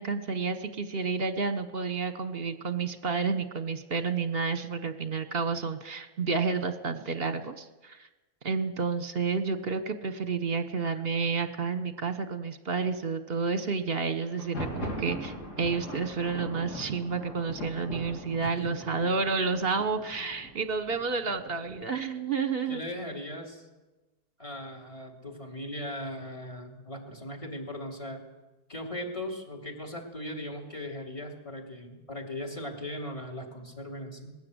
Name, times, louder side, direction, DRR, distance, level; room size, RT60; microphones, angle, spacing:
voice 1, 0.0-8.1 8.4-22.9, right 5 dB, 40° right, 10 dB, 1.3 m, -30 dB
Thunder, 14.3-22.0, equal, 75° left, 4.2 m, -41 dB
voice 2, 18.4-18.8 22.7-23.6 24.4-28.2 28.7-34.3, left 1 dB, 20° left, 2 dB, 3.0 m, -38 dB
21.0 x 16.5 x 8.0 m, 1.1 s
omnidirectional pair, 1.7 m